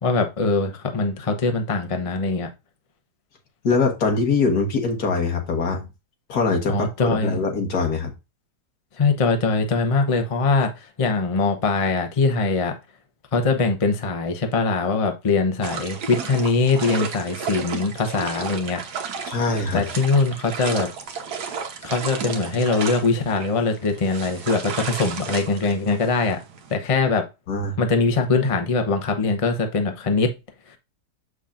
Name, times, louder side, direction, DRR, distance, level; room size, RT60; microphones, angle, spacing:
voice 1, 0.0-2.5 6.7-7.4 9.0-10.7 11.0-12.8 13.3-18.8 19.7-20.9 21.8-26.4 26.7-27.3 27.8-30.3, left 3 dB, 30° left, 0.6 m, -22 dB
voice 2, 3.6-5.9 6.3-8.1 19.3-19.8 27.5-27.8, left 4 dB, 65° left, 1.9 m, -23 dB
sound 1, 15.6-26.7, right 6 dB, 70° right, 1.6 m, -33 dB
7.2 x 6.0 x 2.5 m
omnidirectional pair, 1.9 m